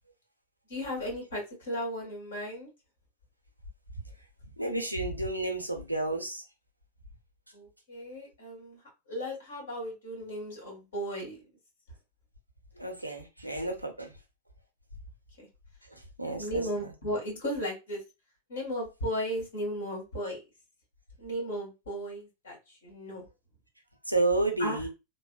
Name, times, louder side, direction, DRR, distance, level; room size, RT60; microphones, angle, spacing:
voice 1, 0.7-2.7 7.5-11.5 15.4-15.5 16.4-18.0 18.5-20.4 21.2-23.2 24.6-24.9, equal, 60° left, 1.8 m, -35 dB
voice 2, 4.6-6.4 12.8-14.1 15.9-16.6 24.1-24.9, right 2 dB, 90° right, 0.6 m, -31 dB
3.3 x 2.1 x 2.4 m
figure-of-eight pair, 90°, 0 cm